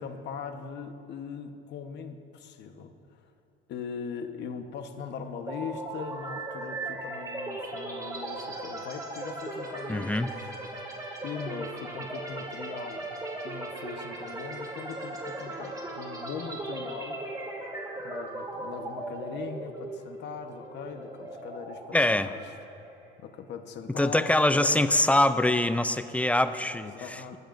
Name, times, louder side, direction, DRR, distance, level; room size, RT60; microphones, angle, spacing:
voice 1, 0.0-3.2 3.7-10.5 11.2-13.1 13.4-17.2 18.0-22.5 23.2-24.9 26.6-27.4, left 6 dB, 60° left, 6 dB, 1.1 m, -40 dB
sound 1, 5.5-23.2, right 2 dB, 20° right, 2.0 m, -38 dB
voice 2, 9.9-10.3 21.9-22.3 24.0-27.4, left 1 dB, 5° left, 11 dB, 0.4 m, -24 dB
22.5 x 16.5 x 2.6 m, 2.7 s
cardioid pair, 140°, 20 cm